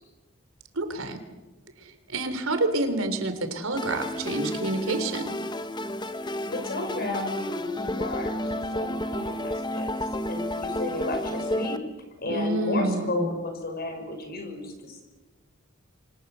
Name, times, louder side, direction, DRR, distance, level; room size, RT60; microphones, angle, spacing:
voice 1, 0.7-1.2 1.8-5.3 12.3-13.4, right 2 dB, 85° right, 8 dB, 3.5 m, -28 dB
sound 1, 3.8-11.8, left 1 dB, 20° left, 1.1 m, -31 dB
voice 2, 6.5-8.4 8.7-11.8 12.2-15.0, left 2 dB, 50° left, 4 dB, 5.7 m, -33 dB
28.0 x 24.5 x 6.9 m, 1.2 s
head